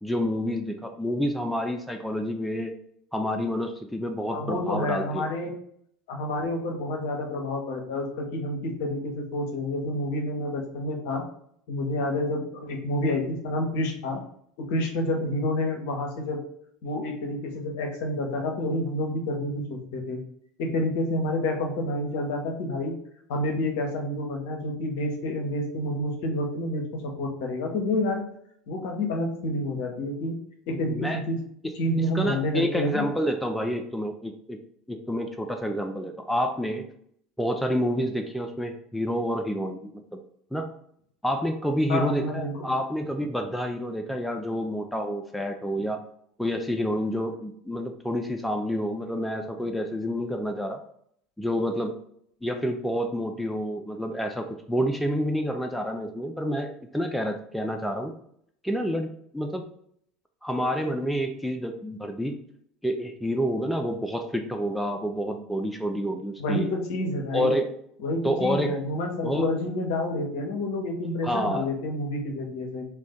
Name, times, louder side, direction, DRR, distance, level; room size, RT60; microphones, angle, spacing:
voice 1, 0.0-2.8 3.1-5.3 30.8-31.2 32.1-34.6 34.9-36.9 37.4-40.2 40.5-40.7 41.2-46.0 46.4-50.8 51.4-52.0 52.4-58.1 58.6-59.1 59.3-59.6 60.4-62.4 62.8-66.7 67.3-67.7 68.2-68.8 69.2-69.5 71.2-71.7, equal, 5° left, 5 dB, 0.3 m, -28 dB
voice 2, 4.3-5.5 6.1-11.2 11.7-14.2 14.7-16.4 16.8-20.2 20.6-22.9 23.3-28.2 28.7-30.4 30.7-31.4 31.7-33.1 41.9-42.5 66.4-67.5 68.0-72.9, left 1 dB, 60° left, 2 dB, 0.6 m, -29 dB
2.5 x 2.2 x 3.5 m, 0.68 s
figure-of-eight pair, 70°, 0 cm